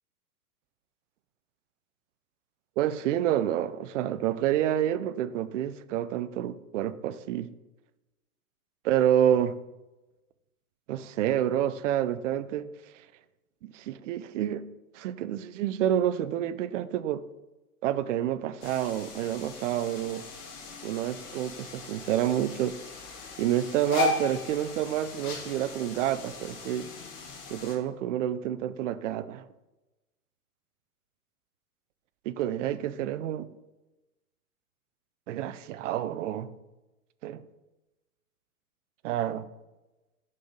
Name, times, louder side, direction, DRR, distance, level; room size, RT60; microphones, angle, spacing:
voice 1, 2.8-7.5 8.8-9.5 10.9-12.7 13.7-14.7 14.9-17.2 17.8-20.2 20.8-22.8 23.4-26.9 27.5-29.4 32.3-33.5 35.3-36.5 37.2-37.4 39.0-39.5, right 11 dB, 55° right, 0.5 m, -28 dB
sound 1, 18.6-27.8, left 4 dB, 60° left, 1.8 m, -37 dB
5.4 x 4.0 x 5.3 m
hypercardioid pair, 115°, 46 cm